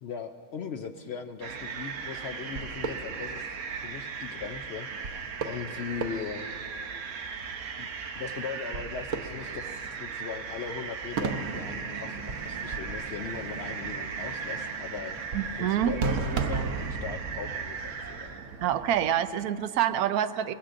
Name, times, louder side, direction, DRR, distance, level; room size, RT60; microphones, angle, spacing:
voice 1, 0.0-3.5 3.8-6.5 7.8-15.2 15.6-18.4, left 6 dB, 65° left, 6 dB, 0.7 m, -39 dB
sound 1, 1.4-19.1, right 5 dB, 65° right, 1.1 m, -35 dB
sound 2, 11.1-16.9, right 3 dB, 40° right, 0.8 m, -45 dB
voice 2, 15.3-16.0 18.6-20.5, right 10 dB, 80° right, 12 dB, 1.1 m, -26 dB
21.5 x 20.0 x 2.6 m, 2.3 s
omnidirectional pair, 1.5 m